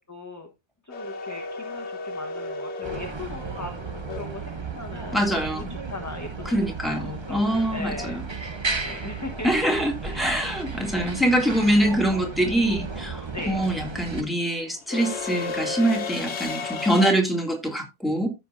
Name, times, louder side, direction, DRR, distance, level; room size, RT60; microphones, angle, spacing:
voice 1, 0.1-0.5 0.8-3.7 4.1-6.6 6.9-8.2 8.8-9.5 10.0-10.5 13.3-13.6, left 2 dB, 15° left, 4 dB, 1.2 m, -38 dB
sound 1, 0.9-5.0 7.4-7.5 8.8-9.1 9.3-17.1, left 4 dB, 90° left, 1.3 m, -34 dB
sound 2, 2.8-14.2, right 4 dB, 25° right, 0.9 m, -34 dB
voice 2, 5.1-5.7 6.5-8.2 9.4-18.3, right 1 dB, ahead, 1 dB, 2.4 m, -24 dB
15.0 x 5.7 x 2.6 m, 0.23 s
omnidirectional pair, 1.1 m